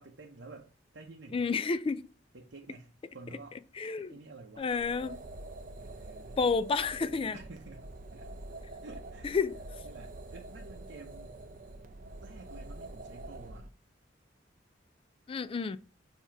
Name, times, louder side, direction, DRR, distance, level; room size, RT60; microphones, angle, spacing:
voice 1, 0.0-1.5 2.3-3.6 4.0-4.7 5.7-6.4 7.3-7.9 8.1-8.3 8.8-9.3 9.8-11.4 12.2-13.7, right 3 dB, 70° right, 0.8 m, -50 dB
voice 2, 1.3-2.1 3.8-4.1 4.6-5.2 6.4-7.4 9.2-9.6 15.3-15.8, left 4 dB, 30° left, 0.3 m, -30 dB
sound 1, 4.5-13.7, right 2 dB, 45° right, 0.6 m, -46 dB
7.0 x 2.9 x 5.7 m
head